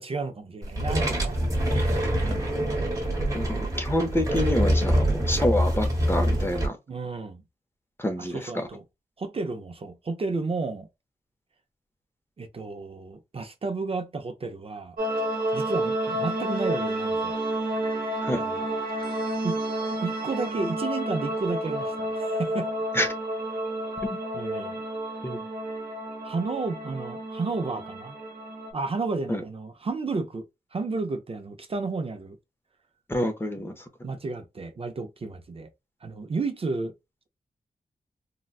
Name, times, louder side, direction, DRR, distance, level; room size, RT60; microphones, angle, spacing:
voice 1, 0.0-2.4 6.9-7.4 8.2-8.8 9.2-10.9 12.4-15.0 15.5-17.4 18.3-18.5 19.4-19.6 20.0-22.7 24.3-24.8 26.2-28.2 28.7-30.4 30.7-32.4 34.0-35.7 36.0-36.9, right 3 dB, 40° right, 0.5 m, -32 dB
sound 1, 0.6-6.7, equal, 20° right, 1.2 m, -25 dB
voice 2, 3.3-6.8 8.0-8.7 18.2-18.4 22.9-23.1 25.2-25.4 29.3-29.4 33.1-33.8, left 1 dB, 15° left, 0.6 m, -27 dB
sound 2, 15.0-28.7, right 1 dB, 70° right, 1.2 m, -30 dB
3.8 x 2.1 x 2.3 m
wide cardioid pair, 165°, 15 cm